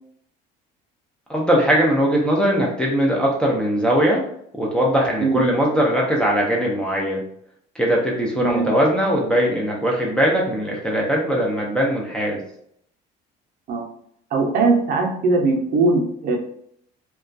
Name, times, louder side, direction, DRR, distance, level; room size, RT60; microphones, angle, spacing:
voice 1, 1.3-4.3 4.6-7.2 7.8-12.4, equal, 5° left, -3 dB, 0.4 m, -20 dB
voice 2, 8.4-8.7 13.7-13.9 14.3-16.4, right 3 dB, 50° right, 1 dB, 0.6 m, -20 dB
2.3 x 2.2 x 2.5 m, 0.69 s
cardioid pair, 150°, 19 cm